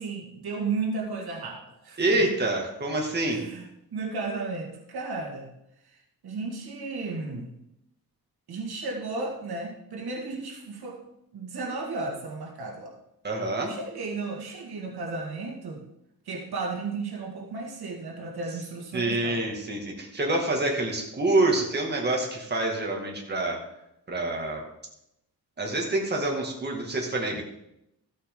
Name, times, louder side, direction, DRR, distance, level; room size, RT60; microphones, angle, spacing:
voice 1, 0.0-2.3 3.3-5.5 6.2-7.5 8.5-11.0 11.3-12.9 13.7-15.8 16.3-19.4, right 3 dB, 75° right, 1 dB, 2.0 m, -34 dB
voice 2, 2.0-3.4 13.2-13.7 18.9-23.6 24.1-24.6 25.6-27.4, right 2 dB, 25° right, 0 dB, 2.0 m, -26 dB
14.0 x 8.5 x 3.7 m, 0.82 s
wide cardioid pair, 145°, 38 cm